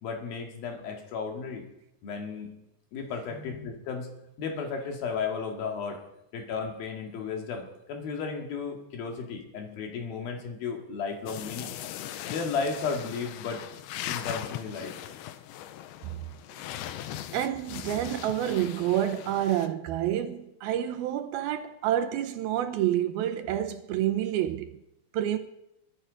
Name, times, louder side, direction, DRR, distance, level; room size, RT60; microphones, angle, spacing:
voice 1, 0.0-1.7 2.0-2.5 2.9-4.1 4.4-6.0 6.3-11.7 12.3-13.6 14.1-15.0, left 5 dB, 65° left, 3.7 m, -34 dB
sound 1, 11.3-19.7, left 12 dB, 85° left, 2.7 m, -39 dB
voice 2, 17.3-24.8 25.1-25.4, right 11 dB, 75° right, 2.5 m, -28 dB
21.5 x 10.5 x 5.1 m
omnidirectional pair, 4.6 m